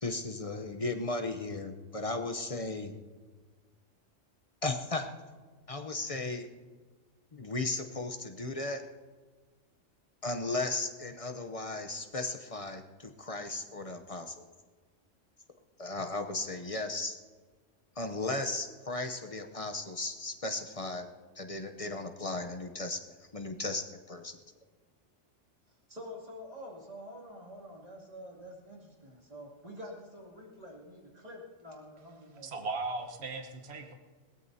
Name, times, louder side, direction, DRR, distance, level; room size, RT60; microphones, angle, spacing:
voice 1, 0.0-2.9 4.6-5.1 5.7-6.5 7.3-8.8 10.2-14.5 15.8-17.2 18.0-21.1 21.4-23.0 23.3-24.4, left 2 dB, 35° left, 5 dB, 0.7 m, -36 dB
voice 2, 25.9-32.7, equal, 30° right, -3 dB, 2.7 m, -47 dB
voice 3, 32.4-33.9, right 3 dB, 60° right, 4 dB, 1.4 m, -37 dB
21.5 x 17.0 x 2.7 m, 1.4 s
omnidirectional pair, 1.3 m